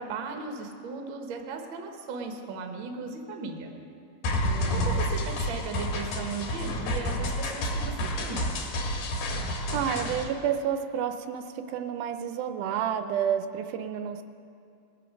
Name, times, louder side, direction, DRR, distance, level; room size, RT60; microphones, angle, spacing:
voice 1, 0.0-3.7 4.7-7.9 8.2-8.5, right 4 dB, 60° right, 4 dB, 1.3 m, -37 dB
sound 1, 4.2-10.2, left 1 dB, 70° left, 2.7 m, -29 dB
voice 2, 4.4-5.0 9.7-14.2, right 8 dB, 80° right, 8 dB, 2.1 m, -30 dB
20.0 x 7.7 x 5.1 m, 2.5 s
omnidirectional pair, 3.7 m